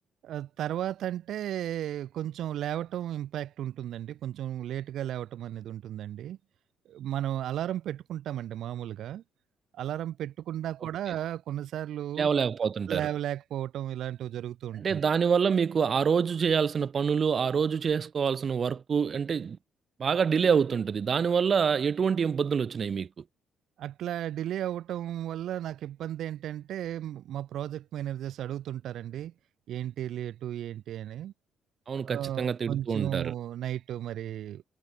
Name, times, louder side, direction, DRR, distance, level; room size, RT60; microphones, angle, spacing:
voice 1, 0.2-6.4 6.9-9.2 9.7-12.3 12.9-15.0 23.8-29.3 29.7-31.3 32.1-34.6, right 11 dB, 75° right, 1.6 m, -34 dB
voice 2, 12.2-13.0 14.8-19.6 20.0-23.1 31.9-33.3, right 6 dB, 45° right, 2.1 m, -26 dB
cardioid pair, 90°, 0 cm